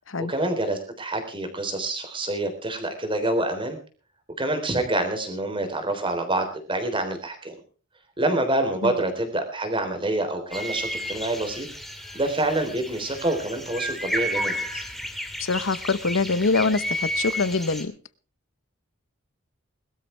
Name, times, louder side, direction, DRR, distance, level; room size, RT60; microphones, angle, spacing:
voice 1, 0.3-3.8 4.4-7.5 8.2-11.7 12.1-14.8, right 1 dB, 25° right, 3.6 m, -27 dB
sound 1, 10.5-17.8, equal, ahead, 2.3 m, -32 dB
voice 2, 15.4-17.9, left 3 dB, 70° left, 1.0 m, -24 dB
21.5 x 13.0 x 3.4 m
head